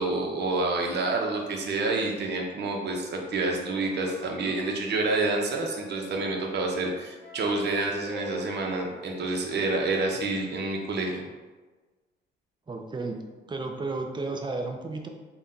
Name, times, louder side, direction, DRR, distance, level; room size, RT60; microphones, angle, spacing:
voice 1, 0.0-11.2, right 2 dB, 60° right, 1 dB, 0.8 m, -28 dB
Wind instrument woodwind instrument, 3.7-6.7 7.2-10.7, left 1 dB, 5° left, 1.3 m, -45 dB
voice 2, 12.7-15.1, right 3 dB, 25° right, 3 dB, 0.5 m, -33 dB
3.9 x 2.3 x 3.8 m, 1.3 s
cardioid pair, 90°, 20 cm